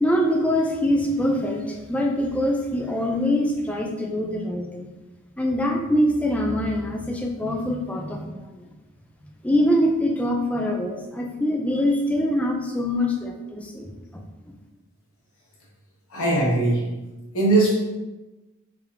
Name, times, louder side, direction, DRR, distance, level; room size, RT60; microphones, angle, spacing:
voice 1, 0.0-4.9 5.4-8.6 9.4-14.2, left 1 dB, 5° left, 1 dB, 0.4 m, -24 dB
voice 2, 16.1-16.9 17.3-17.8, right 2 dB, 80° left, -5 dB, 1.4 m, -20 dB
4.5 x 3.4 x 2.6 m, 1.1 s
head